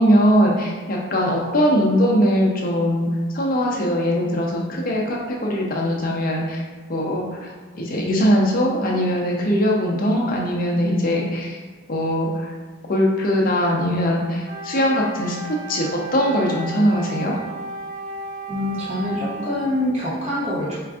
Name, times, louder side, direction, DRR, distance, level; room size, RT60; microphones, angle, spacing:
voice 1, 0.0-3.1 3.3-6.6 6.9-7.2 7.7-11.5 11.9-12.3 12.9-15.4 15.7-17.4, equal, 40° left, -2 dB, 0.5 m, -20 dB
Wind instrument woodwind instrument, 14.4-19.6, right 1 dB, 80° right, 0.9 m, -34 dB
voice 2, 18.5-20.8, left 1 dB, 30° right, -8 dB, 0.8 m, -25 dB
4.5 x 2.5 x 2.3 m, 1.4 s
head